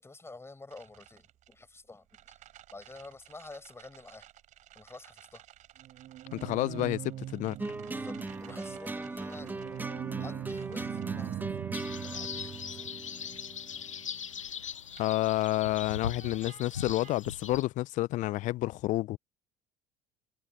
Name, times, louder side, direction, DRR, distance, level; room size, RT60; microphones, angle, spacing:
voice 1, 0.0-2.4 2.7-4.3 4.7-5.4 7.9-9.5 10.1-11.6 12.0-13.0, left 3 dB, 15° left, 6.4 m, -49 dB
sound 1, 0.7-1.5 2.1-14.4 15.0-15.5 16.2-17.2, right 12 dB, 50° right, 3.9 m, -43 dB
voice 2, 6.3-7.6 15.0-19.2, left 17 dB, 50° left, 0.7 m, -30 dB
sound 2, 7.6-14.1, right 2 dB, 10° right, 1.0 m, -39 dB
sound 3, 11.7-17.6, left 8 dB, 85° left, 0.7 m, -40 dB
figure-of-eight pair, 60°, 16 cm